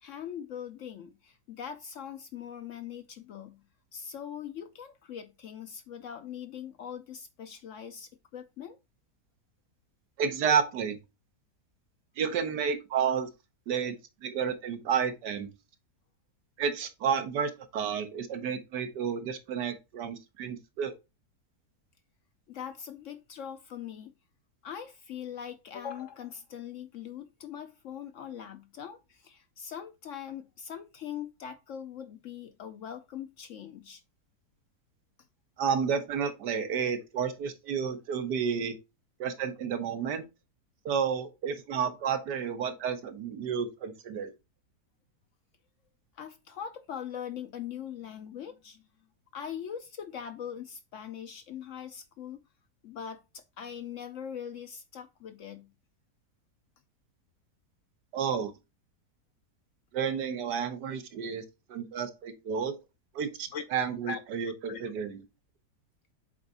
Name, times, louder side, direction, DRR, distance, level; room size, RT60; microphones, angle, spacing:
voice 1, 0.0-3.6 3.9-8.8 22.5-24.1 24.6-34.0 46.1-48.8 49.3-52.4 52.8-55.7 63.5-63.6 64.1-64.2 64.7-64.9, left 8 dB, 65° left, 0.8 m, -41 dB
voice 2, 10.2-11.0 12.2-13.3 13.7-14.0 14.2-15.5 16.6-20.9 35.6-38.8 39.2-40.2 40.8-44.3 58.1-58.5 59.9-61.4 61.7-62.8 63.1-65.2, right 7 dB, 85° right, 1.5 m, -31 dB
7.9 x 3.5 x 4.1 m
omnidirectional pair, 1.7 m